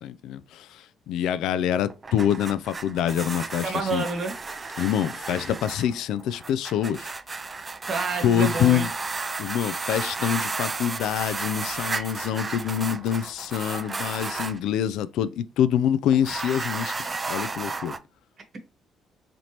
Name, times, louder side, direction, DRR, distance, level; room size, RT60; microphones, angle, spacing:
voice 1, 0.0-4.0 4.8-7.1 8.2-8.9 9.4-18.0, left 10 dB, 85° left, 0.3 m, -26 dB
sound 1, 1.9-14.6 16.1-18.0, right 3 dB, 25° right, 0.3 m, -33 dB
voice 2, 3.6-4.3 7.9-8.9, right 4 dB, 40° right, 1.1 m, -28 dB
4.1 x 3.2 x 2.9 m
cardioid pair, 130°, 0 cm